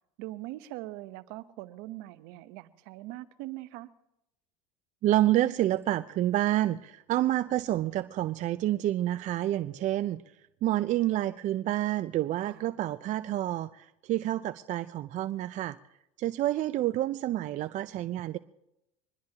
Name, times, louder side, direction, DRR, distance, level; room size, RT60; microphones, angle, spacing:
voice 1, 0.2-3.9 12.4-12.7, right 17 dB, 65° right, 13 dB, 0.9 m, -42 dB
voice 2, 5.0-10.2 10.6-15.8 16.2-18.4, right 14 dB, 45° right, 13 dB, 0.5 m, -28 dB
24.0 x 20.5 x 2.9 m, 0.87 s
hypercardioid pair, 85°, 18 cm